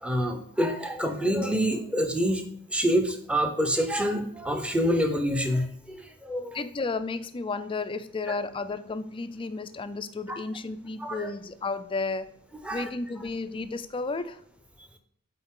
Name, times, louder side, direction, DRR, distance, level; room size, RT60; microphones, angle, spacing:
voice 1, 0.0-2.4 2.7-6.6 10.3-10.4 11.0-11.3 12.6-12.8, equal, 5° right, 5 dB, 0.7 m, -27 dB
voice 2, 6.5-12.3 12.7-14.4, left 3 dB, 25° left, 11 dB, 0.4 m, -33 dB
8.8 x 4.0 x 3.7 m, 0.69 s
head